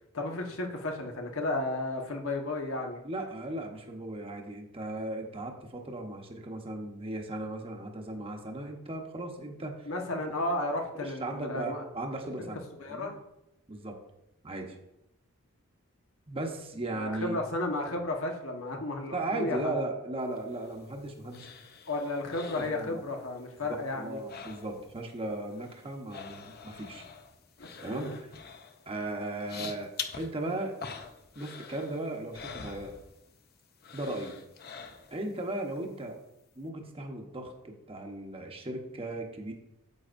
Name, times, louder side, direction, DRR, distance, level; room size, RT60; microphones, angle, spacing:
voice 1, 0.1-3.0 9.9-11.8 12.4-12.5 12.7-13.2 17.0-19.8 21.9-24.2 27.6-28.1, left 2 dB, 90° left, 2 dB, 1.3 m, -33 dB
voice 2, 3.0-10.2 11.0-13.1 13.7-14.0 14.4-14.8 16.3-17.4 19.1-21.5 22.5-23.0 23.7-27.0 27.8-28.3 28.9-30.7 31.3-32.9 33.9-34.4 35.1-36.2 36.6-39.5, right 2 dB, 25° right, 3 dB, 1.0 m, -37 dB
sound 1, 20.4-23.4 23.7-25.0 25.3-33.5 33.8-35.3 35.7-35.8, left 6 dB, 50° left, 0.7 m, -45 dB
9.7 x 8.0 x 2.6 m, 0.87 s
head